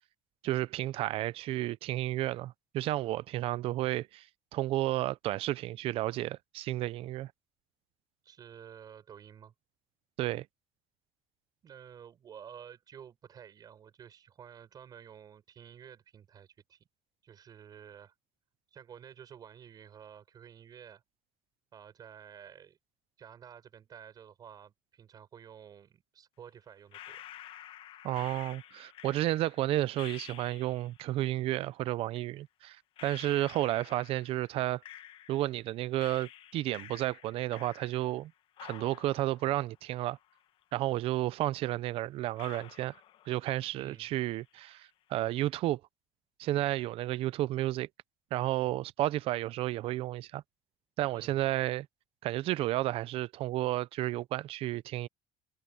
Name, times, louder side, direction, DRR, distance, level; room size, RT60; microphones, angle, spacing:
voice 1, 0.4-4.2 4.5-7.3 10.2-10.4 28.0-32.8 33.0-34.8 35.3-38.3 38.6-40.2 40.7-42.9 43.3-45.8 46.4-47.9 48.3-50.4 51.0-51.9 52.2-55.1, right 15 dB, 55° right, 0.6 m, -32 dB
voice 2, 8.2-9.5 11.6-16.8 17.2-18.1 18.7-21.0 21.7-22.8 23.2-27.2 43.7-44.1 51.1-51.5, right 8 dB, 35° right, 7.4 m, -51 dB
sound 1, 26.9-31.0 32.1-32.2 33.0-35.6 36.0-38.3 38.6-40.6 40.9-41.0 41.7-41.8 42.4-43.7 44.0-44.5, left 12 dB, 50° left, 1.3 m, -51 dB
cardioid pair, 160°, 12 cm